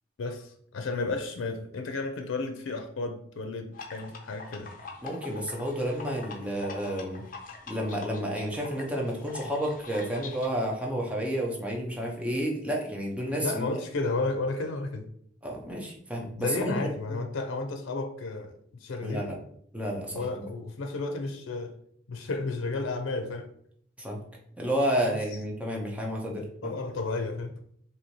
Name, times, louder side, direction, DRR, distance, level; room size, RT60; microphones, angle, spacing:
voice 1, 0.2-4.7 13.4-15.1 16.4-19.3 20.1-21.7 22.1-23.5 25.0-25.2 26.6-27.5, left 3 dB, 85° left, 6 dB, 0.5 m, -32 dB
sound 1, 3.7-10.5, left 4 dB, 45° left, 0.7 m, -44 dB
voice 2, 5.0-7.2 7.7-13.8 15.4-16.8 17.1-17.2 19.0-19.3 19.7-20.5 24.0-24.2 24.6-26.7, equal, 5° right, -1 dB, 0.7 m, -31 dB
3.0 x 2.7 x 4.0 m, 0.66 s
head